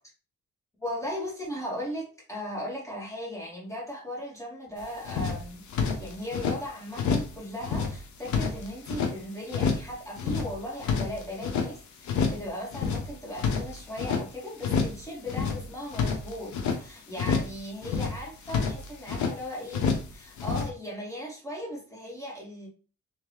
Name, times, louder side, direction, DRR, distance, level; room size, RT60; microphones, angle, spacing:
voice 1, 0.8-5.6 6.0-22.7, equal, 10° left, 2.1 m, -37 dB
sound 1, 4.8-4.9 5.0-6.6 6.9-7.4 7.6-9.1 9.5-9.9 10.2-11.7 12.0-12.5 12.7-14.2 14.6-15.0 15.3-16.8 17.2-17.6 17.8-19.3 19.7-20.1 20.4-20.7, left 5 dB, 70° left, 0.9 m, -28 dB
3.4 x 2.9 x 3.5 m
cardioid pair, 90°, 30 cm